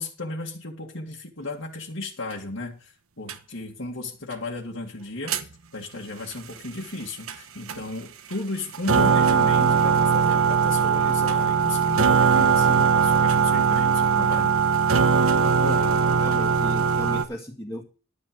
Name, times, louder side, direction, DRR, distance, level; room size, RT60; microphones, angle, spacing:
voice 1, 0.0-14.5 15.4-16.0, left 2 dB, 60° left, -2 dB, 2.0 m, -35 dB
sound 1, 3.3-3.4 5.3-5.4 7.3-7.4 7.7-7.8 8.3-8.4 8.7-17.2, right 6 dB, 85° right, 1.2 m, -20 dB
voice 2, 16.0-17.8, equal, 15° left, -4 dB, 2.1 m, -36 dB
12.5 x 8.8 x 5.2 m, 0.35 s
head